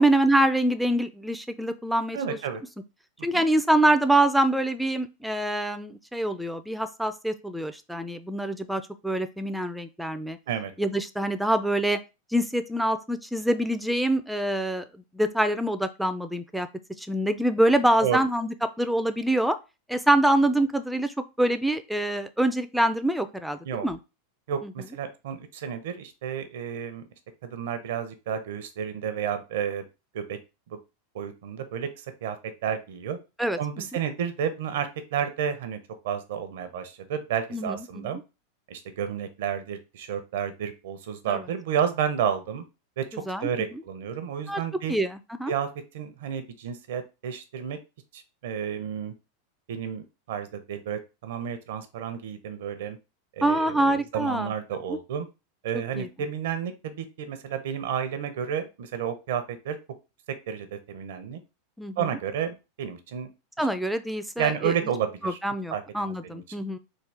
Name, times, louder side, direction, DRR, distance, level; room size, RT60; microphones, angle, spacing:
voice 1, 0.0-2.4 3.2-10.4 10.8-12.0 12.3-14.8 15.1-16.7 17.0-19.6 19.9-24.0 24.6-24.7 33.4-33.8 37.5-38.2 41.3-41.4 43.3-43.5 44.5-44.6 44.9-45.5 53.4-54.5 54.9-55.0 55.7-56.1 61.8-62.1 63.6-64.7 65.2-66.8, right 1 dB, ahead, 10 dB, 0.4 m, -25 dB
voice 2, 2.1-2.6 3.3-3.5 10.5-10.7 18.0-18.2 23.6-23.9 24.5-27.0 27.4-29.8 30.1-30.4 30.7-30.8 31.1-31.9 32.2-33.2 33.6-35.8 36.0-38.2 38.7-42.6 43.0-44.9 45.5-45.7 45.9-47.8 48.1-49.1 49.7-53.0 53.4-55.3 55.6-59.8 60.5-61.4 62.0-63.3 64.4-65.4 65.7-66.4, right 8 dB, 70° right, 9 dB, 0.6 m, -31 dB
3.6 x 2.4 x 3.3 m, 0.28 s
hypercardioid pair, 95°, 0 cm